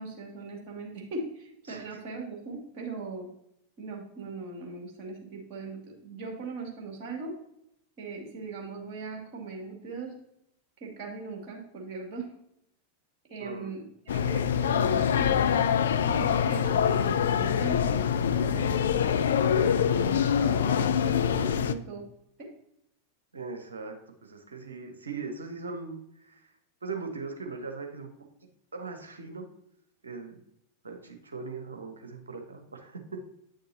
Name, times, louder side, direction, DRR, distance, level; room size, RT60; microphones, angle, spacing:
voice 1, 0.0-3.3 3.8-7.3 8.0-10.1 10.8-12.3 13.3-19.0 19.5-22.0 22.4-22.5, right 4 dB, 40° right, 0 dB, 2.3 m, -39 dB
voice 2, 13.4-13.7 23.3-23.9 24.2-26.4 26.8-28.1 28.7-29.5 30.0-30.3 30.8-33.0, right 4 dB, 75° right, 5 dB, 1.0 m, -39 dB
sound 1, 14.1-21.7, left 8 dB, 65° left, 0.4 m, -25 dB
9.0 x 6.5 x 2.8 m, 0.77 s
figure-of-eight pair, 90°, 0 cm